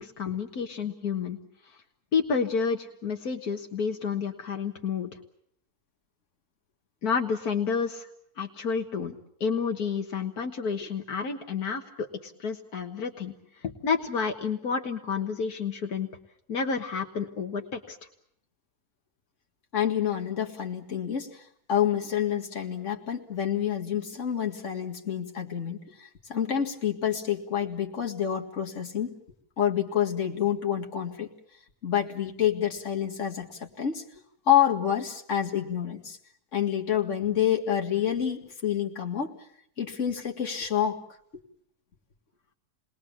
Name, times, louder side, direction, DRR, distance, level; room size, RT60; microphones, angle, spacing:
voice 1, 0.0-1.4 2.1-5.1 7.0-8.1 8.4-9.2 9.4-13.3 13.6-16.1 16.5-18.0, left 5 dB, 75° left, 3 dB, 1.9 m, -30 dB
voice 2, 19.7-21.4 21.7-29.1 29.6-31.3 31.8-34.0 34.5-36.2 36.5-39.3 39.8-41.0, left 9 dB, 50° left, 2 dB, 2.4 m, -28 dB
29.5 x 20.5 x 7.3 m, 0.70 s
omnidirectional pair, 1.6 m